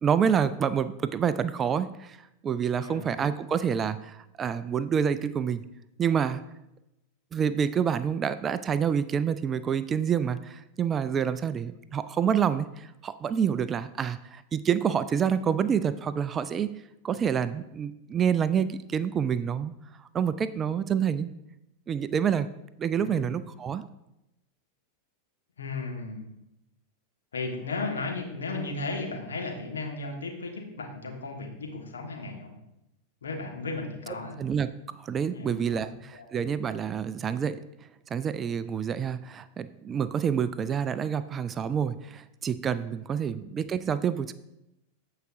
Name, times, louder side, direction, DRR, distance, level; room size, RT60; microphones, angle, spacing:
voice 1, 0.0-2.2 2.4-5.6 6.0-6.4 7.3-16.7 17.0-19.7 20.1-21.3 21.9-22.5 22.8-23.8 34.4-34.7 35.0-37.6 38.1-44.3, right 7 dB, 25° right, 14 dB, 0.3 m, -27 dB
voice 2, 2.7-3.1 22.9-23.3 25.6-26.3 27.3-32.5 33.2-34.4 35.3-36.3 43.2-43.3, left 3 dB, 70° left, 2 dB, 1.4 m, -35 dB
14.5 x 4.9 x 2.6 m, 0.89 s
figure-of-eight pair, 90°, 0 cm